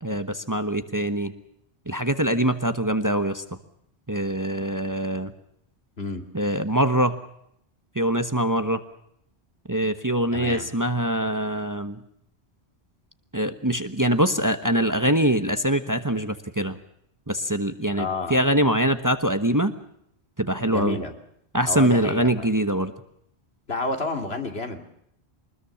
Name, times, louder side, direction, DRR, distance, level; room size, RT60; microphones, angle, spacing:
voice 1, 0.0-1.3 1.9-3.4 4.1-5.3 6.3-7.2 7.9-8.8 9.7-12.0 13.3-16.8 17.3-19.7 20.4-21.0 21.5-22.9, right 1 dB, 20° right, 9 dB, 1.2 m, -23 dB
voice 2, 10.3-10.7 18.0-18.4 20.7-21.1 21.7-22.5 23.7-24.8, left 2 dB, 65° left, 5 dB, 2.8 m, -30 dB
24.0 x 20.5 x 7.0 m, 0.73 s
omnidirectional pair, 1.1 m